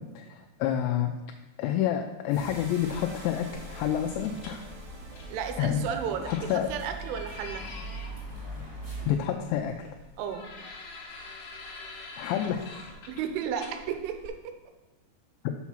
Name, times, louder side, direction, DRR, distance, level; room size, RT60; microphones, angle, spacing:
voice 1, 0.2-1.1 1.6-4.6 5.6-5.8 6.3-6.7 9.1-9.9 12.2-12.8, left 10 dB, 85° left, 4 dB, 2.8 m, -28 dB
sound 1, 2.3-8.7, right 2 dB, 60° right, 3.6 m, -49 dB
sound 2, 2.4-9.1, right 1 dB, 15° right, 1.8 m, -42 dB
sound 3, 3.5-14.3, left 3 dB, 65° left, 2.3 m, -46 dB
voice 2, 5.3-7.7 10.2-10.5 13.1-14.4, right 8 dB, 85° right, 7 dB, 3.3 m, -33 dB
7.1 x 5.9 x 5.8 m, 1.1 s
omnidirectional pair, 5.6 m